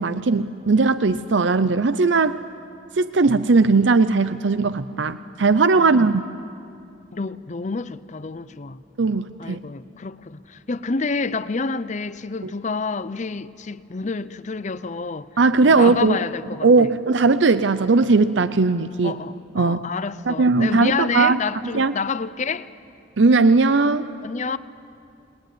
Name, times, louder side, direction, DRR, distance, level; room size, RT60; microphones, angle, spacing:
voice 1, 0.0-2.4 3.0-6.2 9.0-9.6 12.4-12.5 15.4-16.2 16.6-19.2 19.6-19.8 20.3-21.4 21.7-21.9 23.2-24.1, right 3 dB, 75° right, 0.7 m, -18 dB
voice 2, 5.8-6.1 7.1-8.8 9.4-15.3 15.6-16.9 19.0-22.7 24.2-24.6, left 4 dB, 40° left, 0.6 m, -28 dB
29.5 x 21.0 x 9.4 m
head